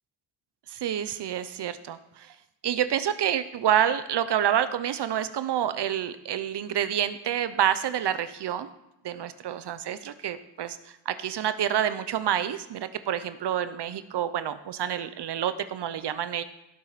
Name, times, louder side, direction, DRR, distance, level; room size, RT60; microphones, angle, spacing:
voice 1, 0.7-2.3 2.6-8.7 9.0-16.4, right 10 dB, 60° right, 12 dB, 0.9 m, -28 dB
17.0 x 7.2 x 4.2 m, 0.89 s
cardioid pair, 80°, 46 cm